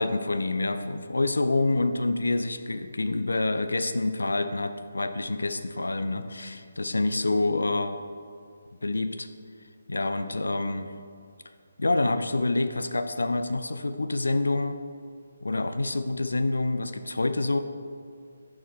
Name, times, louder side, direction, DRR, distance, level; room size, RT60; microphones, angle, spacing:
voice 1, 0.0-8.0 8.8-9.3 9.9-10.9 11.8-14.8 15.4-17.6, left 2 dB, 70° left, 9 dB, 0.3 m, -27 dB
6.3 x 4.6 x 4.2 m, 2.2 s
figure-of-eight pair, 145°, 0 cm